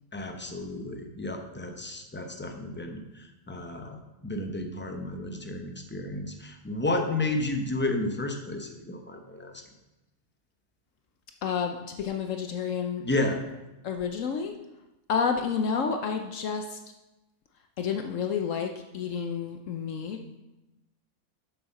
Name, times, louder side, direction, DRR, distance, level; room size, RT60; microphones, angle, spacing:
voice 1, 0.1-4.0 4.2-9.5 13.0-13.4, left 2 dB, 10° left, 5 dB, 0.6 m, -32 dB
voice 2, 11.4-13.4 13.8-14.5 15.1-16.8 17.8-20.4, left 6 dB, 70° left, 5 dB, 1.0 m, -30 dB
7.5 x 6.9 x 5.5 m, 0.99 s
omnidirectional pair, 1.5 m